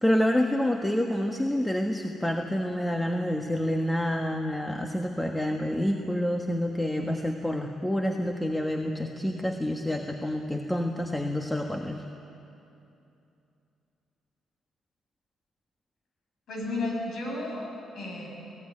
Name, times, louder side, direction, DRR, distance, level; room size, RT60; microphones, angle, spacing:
voice 1, 0.0-12.0, left 1 dB, 10° left, 3 dB, 1.4 m, -28 dB
voice 2, 16.5-18.3, left 2 dB, 65° left, 0 dB, 7.6 m, -33 dB
22.5 x 17.0 x 9.9 m, 2.8 s
cardioid pair, 90°, 0 cm